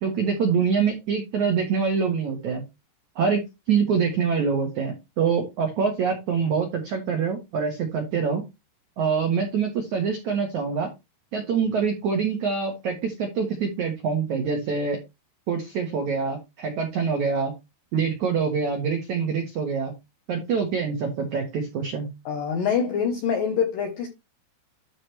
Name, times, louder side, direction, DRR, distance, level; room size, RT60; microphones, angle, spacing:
voice 1, 0.0-2.6 3.2-8.4 9.0-10.9 11.3-15.0 15.5-17.5 17.9-19.9 20.3-22.1, right 6 dB, 75° right, 1.7 m, -25 dB
voice 2, 22.3-24.1, left 7 dB, 80° left, 2.0 m, -25 dB
12.5 x 4.7 x 3.2 m
omnidirectional pair, 5.6 m